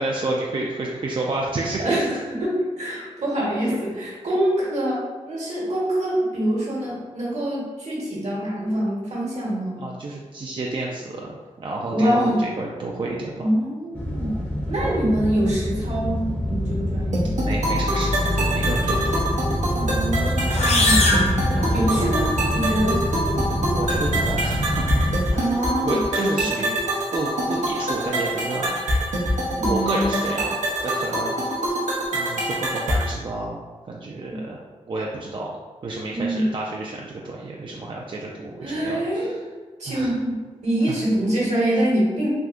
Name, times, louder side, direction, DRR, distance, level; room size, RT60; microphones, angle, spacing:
voice 1, 0.0-2.0 3.6-3.8 9.8-13.5 14.8-14.9 17.4-19.3 20.8-21.2 21.5-22.2 23.7-25.4 25.8-26.8 27.1-28.8 29.6-31.8 32.1-33.6 33.9-35.5 35.8-39.4 39.9-40.2 40.9-41.0 41.7-41.8, right 2 dB, 40° right, -2 dB, 0.4 m, -30 dB
voice 2, 1.8-9.8 11.9-12.4 13.4-17.3 19.7-23.1 25.3-26.6 29.6-30.4 34.3-34.4 36.1-36.5 38.6-39.4 39.8-40.4 40.6-42.3, right 1 dB, 70° right, -5 dB, 1.1 m, -25 dB
sound 1, 14.0-25.2, left 1 dB, 15° left, 0.7 m, -25 dB
sound 2, 17.1-33.1, right 1 dB, 85° right, 0.7 m, -25 dB
sound 3, 20.4-22.3, left 2 dB, 60° left, 0.6 m, -23 dB
3.4 x 2.6 x 2.4 m, 1.4 s
cardioid pair, 55°, 12 cm